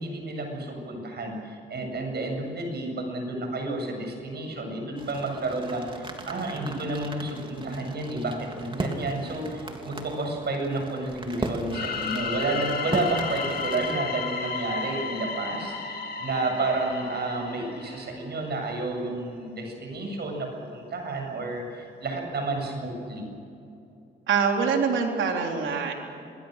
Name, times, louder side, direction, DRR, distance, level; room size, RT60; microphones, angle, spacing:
voice 1, 0.0-23.3, right 2 dB, 55° right, 3 dB, 7.7 m, -31 dB
sound 1, 5.0-13.9, right 2 dB, 25° right, 3.3 m, -37 dB
sound 2, 11.7-18.4, left 5 dB, 50° left, 3.0 m, -33 dB
voice 2, 24.3-25.9, right 5 dB, 75° right, 2 dB, 3.9 m, -24 dB
27.5 x 20.5 x 6.7 m, 2.7 s
cardioid pair, 80°, 20 cm